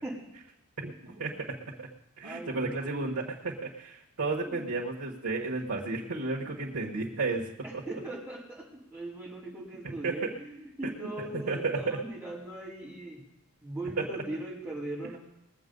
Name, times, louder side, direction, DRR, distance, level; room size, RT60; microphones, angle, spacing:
voice 1, 0.8-1.3 1.8-1.9 2.2-7.5 9.8-10.3 11.2-12.0, right 3 dB, 90° right, -2 dB, 1.5 m, -33 dB
voice 2, 2.2-3.2 4.4-4.7 7.6-8.6 8.9-13.2 13.6-15.2, right 1 dB, 10° right, -7 dB, 4.2 m, -40 dB
21.0 x 7.6 x 5.4 m, 0.84 s
head